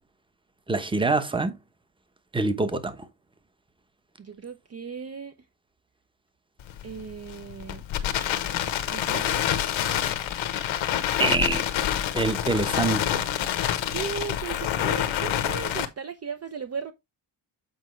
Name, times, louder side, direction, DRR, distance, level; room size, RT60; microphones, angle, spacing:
voice 1, 0.7-1.6 2.3-3.0 11.2-11.6 12.1-13.3, right 3 dB, 10° right, 0.9 m, -25 dB
voice 2, 4.2-5.3 6.8-7.8 8.9-9.5 13.9-16.9, right 6 dB, 35° right, 0.6 m, -36 dB
Crackle, 6.6-15.8, left 11 dB, 80° left, 1.1 m, -27 dB
8.0 x 5.0 x 3.1 m
cardioid pair, 120°, 46 cm